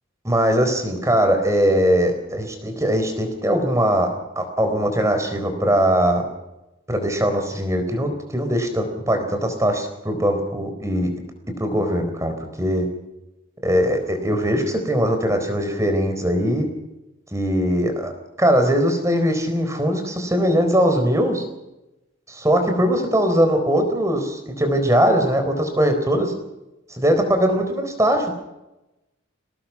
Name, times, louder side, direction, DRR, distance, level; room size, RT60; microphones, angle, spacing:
voice 1, 0.2-6.2 6.9-11.1 11.6-12.9 13.6-16.7 17.3-18.1 18.4-21.4 22.3-26.3 27.0-28.3, equal, 15° right, 6 dB, 4.1 m, -20 dB
24.5 x 18.5 x 6.1 m, 0.96 s
head